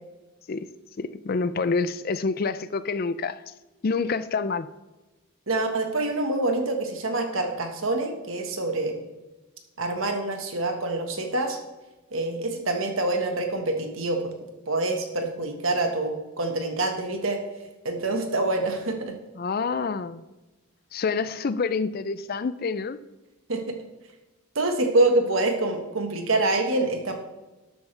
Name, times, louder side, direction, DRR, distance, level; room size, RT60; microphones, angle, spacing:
voice 1, 1.0-3.4 3.8-4.7 19.4-20.2 20.9-23.0, left 4 dB, 45° left, 14 dB, 0.4 m, -27 dB
voice 2, 5.5-8.9 9.8-11.6 12.1-14.3 14.7-17.4 17.8-19.2 23.5-23.7 24.5-27.1, right 2 dB, 65° right, 4 dB, 1.5 m, -26 dB
12.5 x 8.1 x 3.4 m, 1.1 s
head